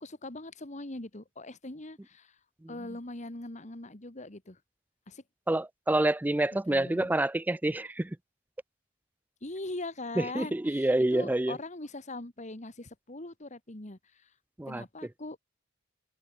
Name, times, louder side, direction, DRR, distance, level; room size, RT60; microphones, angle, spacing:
voice 1, 0.0-2.4 2.7-4.6 5.1-5.2 6.7-7.1 9.4-14.3 14.7-15.4, left 2 dB, 40° left, 2.0 m, -41 dB
voice 2, 5.5-8.1 10.2-11.6 14.6-14.8, right 1 dB, 10° right, 0.3 m, -27 dB
head